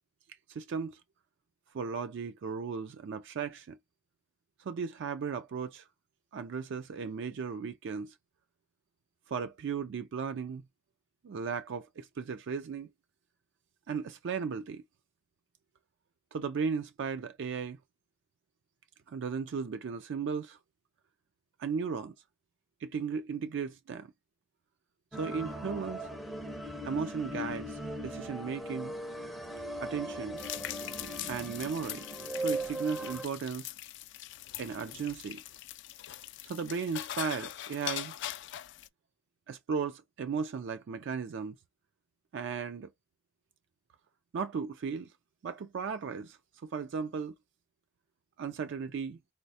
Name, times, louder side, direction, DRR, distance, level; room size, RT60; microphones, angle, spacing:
voice 1, 0.5-1.0 1.7-3.8 4.6-5.8 6.3-8.1 9.3-10.6 11.2-12.9 13.9-14.8 16.3-17.8 19.1-20.6 21.6-22.1 22.8-24.1 25.1-26.1 26.8-28.9 29.8-30.4 31.3-32.1 32.4-33.7 34.6-35.4 36.4-38.1 39.5-41.6 42.3-42.9 44.3-45.1 45.4-47.3 48.4-49.2, right 6 dB, 60° right, 0.3 m, -36 dB
sound 1, 25.1-33.2, right 1 dB, ahead, 0.5 m, -39 dB
sound 2, 30.4-38.9, left 13 dB, 60° left, 0.3 m, -42 dB
4.0 x 2.1 x 2.6 m
head